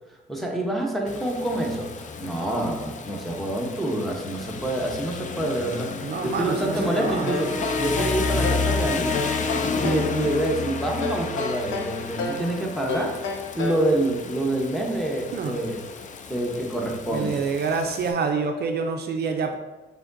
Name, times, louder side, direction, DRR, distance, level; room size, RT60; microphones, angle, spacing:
voice 1, 0.1-5.9 6.2-9.2 9.8-13.2 13.5-15.8 16.3-17.4, right 1 dB, ahead, -1 dB, 0.8 m, -27 dB
Rain, 1.1-18.1, left 4 dB, 40° left, 0.4 m, -33 dB
voice 2, 6.0-7.3 15.3-15.6 17.1-19.6, right 5 dB, 55° right, 4 dB, 0.4 m, -27 dB
Brass instrument, 6.3-10.8, left 3 dB, 20° left, 1.1 m, -31 dB
sound 1, 7.3-8.7 9.1-10.1 11.0-12.5 12.9-13.9, left 3 dB, 75° left, 0.7 m, -30 dB
4.9 x 3.8 x 2.6 m, 1.1 s
cardioid pair, 90°, 20 cm